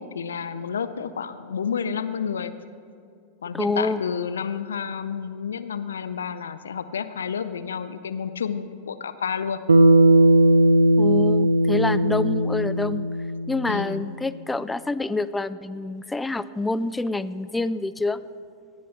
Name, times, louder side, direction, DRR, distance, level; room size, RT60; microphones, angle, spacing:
voice 1, 0.0-2.5 3.4-9.6 13.7-14.1, left 7 dB, 70° left, 12 dB, 0.5 m, -30 dB
voice 2, 3.5-4.0 11.0-13.1 13.5-18.2, left 2 dB, 10° left, 15 dB, 0.3 m, -27 dB
Bass guitar, 9.7-14.1, right 1 dB, 75° right, 0.6 m, -18 dB
18.5 x 6.3 x 7.1 m, 2.4 s
figure-of-eight pair, 90°, 0 cm